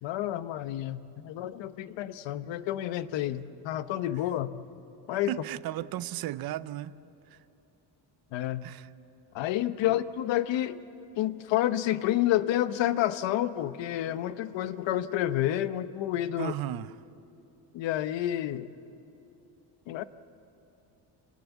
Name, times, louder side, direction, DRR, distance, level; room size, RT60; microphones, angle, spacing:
voice 1, 0.0-4.6 5.1-5.3 8.3-8.6 9.3-10.8 11.2-16.5 17.7-18.7 19.9-20.0, left 13 dB, 85° left, 13 dB, 1.0 m, -29 dB
voice 2, 5.3-7.0 7.3-7.4 8.6-8.9 9.8-10.0 16.4-16.9, right 13 dB, 55° right, 16 dB, 0.6 m, -35 dB
28.0 x 19.0 x 8.3 m, 3.0 s
cardioid pair, 170°, 43 cm